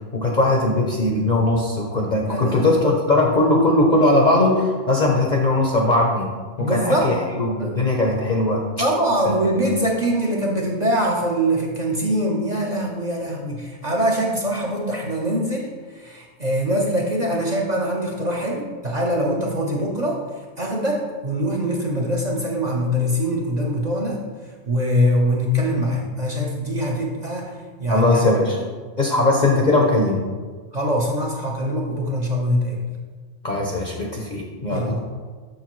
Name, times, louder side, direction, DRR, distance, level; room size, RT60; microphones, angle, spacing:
voice 1, 0.0-6.3 6.6-8.6 9.2-9.6 27.9-28.6 29.0-30.3 33.4-35.0, left 2 dB, 45° left, -1 dB, 0.7 m, -20 dB
voice 2, 2.3-3.0 6.6-7.1 7.6-7.7 8.8-20.2 20.6-24.2 24.7-28.2 29.3-29.6 30.7-32.8 34.7-35.0, equal, 40° right, -2 dB, 0.8 m, -23 dB
6.6 x 6.3 x 3.1 m, 1.5 s
omnidirectional pair, 1.4 m